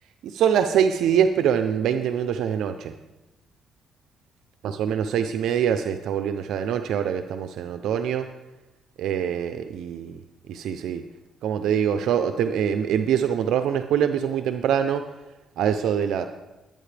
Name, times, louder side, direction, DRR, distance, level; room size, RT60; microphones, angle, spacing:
voice 1, 0.2-2.9 4.6-8.3 9.0-10.2 10.5-11.0 11.4-15.0 15.6-16.3, right 8 dB, 80° right, 8 dB, 0.6 m, -24 dB
21.0 x 8.9 x 3.4 m, 1.0 s
cardioid pair, 90°, 0 cm